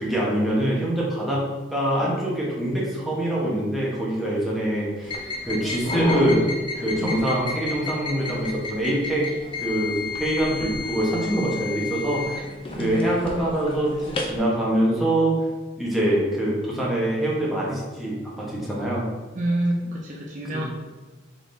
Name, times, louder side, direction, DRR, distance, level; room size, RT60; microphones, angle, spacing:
voice 1, 0.0-5.2 5.4-6.4 6.8-9.3 9.6-12.4 12.8-15.4 15.8-19.1 20.5-20.7, right 1 dB, ahead, -6 dB, 1.0 m, -24 dB
sound 1, 5.0-14.4, left 2 dB, 30° left, 0.5 m, -31 dB
voice 2, 12.8-13.3 19.3-20.7, right 1 dB, 40° right, -2 dB, 0.5 m, -27 dB
4.8 x 3.8 x 2.6 m, 1.2 s
head